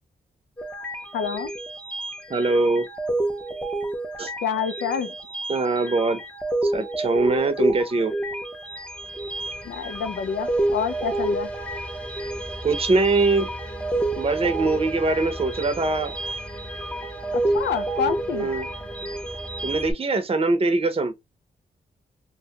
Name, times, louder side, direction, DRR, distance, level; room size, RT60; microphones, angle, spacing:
sound 1, 0.6-19.9, right 2 dB, 5° left, 0.6 m, -29 dB
voice 1, 1.1-1.5 4.4-5.1 9.6-11.5 17.3-18.5, left 6 dB, 85° left, 0.4 m, -27 dB
voice 2, 2.3-2.9 4.2-4.3 5.5-6.2 6.6-8.1 12.6-13.5 14.2-16.1 18.3-18.7 19.6-21.1, right 3 dB, 35° right, 0.6 m, -22 dB
2.2 x 2.2 x 2.8 m
cardioid pair, 55°, 17 cm